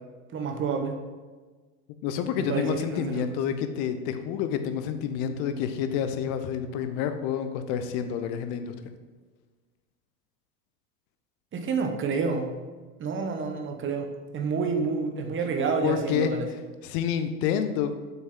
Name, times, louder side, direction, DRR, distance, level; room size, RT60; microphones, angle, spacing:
voice 1, 0.3-0.9 2.4-3.2 11.5-12.6 13.0-16.5, right 5 dB, 25° right, 4 dB, 1.1 m, -29 dB
voice 2, 2.0-8.7 15.8-16.3 16.8-17.9, left 8 dB, 45° left, 9 dB, 0.9 m, -28 dB
7.5 x 6.3 x 3.7 m, 1.4 s
figure-of-eight pair, 80°, 50 cm